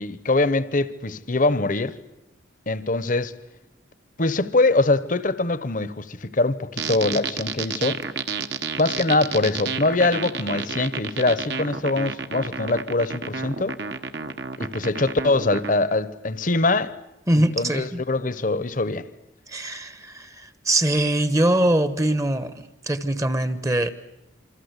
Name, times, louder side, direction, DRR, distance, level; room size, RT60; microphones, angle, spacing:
voice 1, 0.0-2.0 2.7-3.3 4.2-8.0 8.8-13.8 14.6-16.9 17.4-19.1, left 2 dB, 40° left, 1.0 m, -23 dB
sound 1, 6.8-15.7, right 5 dB, 60° right, 1.3 m, -30 dB
voice 2, 17.3-18.0 19.5-23.9, right 1 dB, 15° right, 1.0 m, -23 dB
26.5 x 25.5 x 8.2 m
head